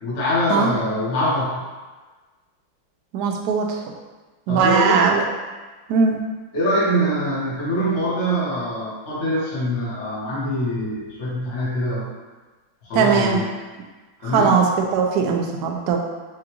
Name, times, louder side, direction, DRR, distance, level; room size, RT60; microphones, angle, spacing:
voice 1, 0.0-1.6 4.5-5.1 6.5-12.1 12.8-13.5 14.2-14.6, equal, 40° left, -8 dB, 1.1 m, -23 dB
voice 2, 3.1-3.8 4.5-5.2 5.9-6.2 12.9-13.4 14.3-14.6 14.9-16.0, right 5 dB, 75° right, 1 dB, 0.9 m, -19 dB
4.9 x 2.4 x 3.0 m, 1.3 s
omnidirectional pair, 2.2 m